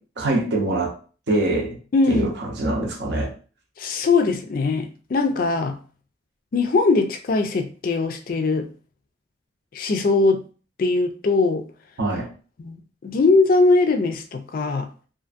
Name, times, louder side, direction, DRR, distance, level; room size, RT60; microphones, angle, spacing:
voice 1, 0.2-0.9 1.3-1.8 2.1-3.3 12.0-12.3, right 2 dB, 65° right, 0.6 m, -23 dB
voice 2, 1.9-2.3 3.8-5.8 6.5-8.7 9.7-10.4 10.8-11.7 12.6-12.8 13.0-14.9, left 3 dB, 45° left, 0.3 m, -20 dB
2.5 x 2.5 x 2.4 m
head